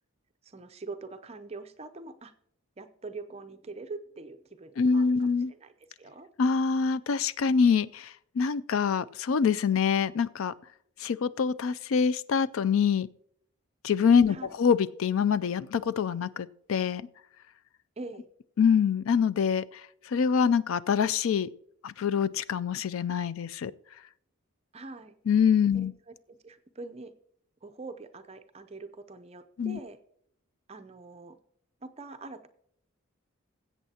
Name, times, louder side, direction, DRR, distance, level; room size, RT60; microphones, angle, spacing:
voice 1, 0.4-2.3 2.8-6.3 14.3-14.6 18.0-18.3 24.7-25.2 25.7-27.1 27.6-30.0 30.7-31.4 31.8-32.5, right 3 dB, 30° right, 9 dB, 0.6 m, -44 dB
voice 2, 4.8-5.5 6.4-10.5 11.0-13.1 13.8-17.0 18.6-21.5 21.8-23.7 25.3-25.9 29.6-29.8, left 6 dB, 75° left, 17 dB, 0.4 m, -25 dB
20.0 x 8.1 x 2.8 m, 0.69 s
head